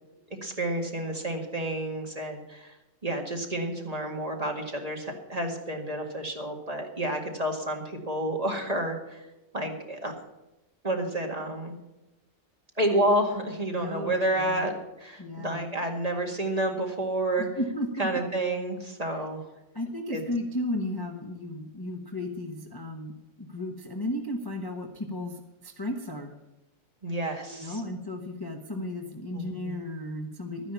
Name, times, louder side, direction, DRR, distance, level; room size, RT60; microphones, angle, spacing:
voice 1, 0.4-2.7 3.0-9.2 9.5-10.1 10.8-11.7 12.8-14.7 15.0-17.5 18.0-19.5 20.1-20.2 27.0-27.8 29.3-29.7, right 1 dB, 25° right, 2 dB, 2.0 m, -30 dB
voice 2, 13.7-14.7 15.2-15.6 17.6-18.1 19.7-26.3 27.4-30.7, left 1 dB, 15° left, 2 dB, 1.1 m, -34 dB
12.5 x 10.0 x 7.0 m, 0.97 s
omnidirectional pair, 1.5 m